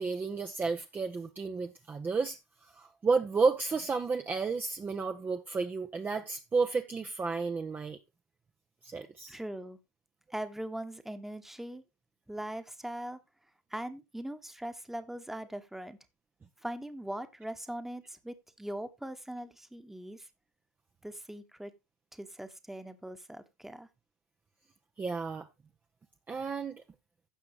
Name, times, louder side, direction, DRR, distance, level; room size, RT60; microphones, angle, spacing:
voice 1, 0.0-8.0 8.8-9.4 25.0-25.5 26.3-26.8, right 4 dB, 20° right, 0.8 m, -32 dB
voice 2, 9.3-9.8 10.3-11.8 12.3-13.2 13.7-16.0 16.6-20.3 21.0-21.7 22.1-23.9, right 1 dB, 5° right, 1.3 m, -41 dB
16.0 x 5.9 x 2.9 m
hypercardioid pair, 90°, 9 cm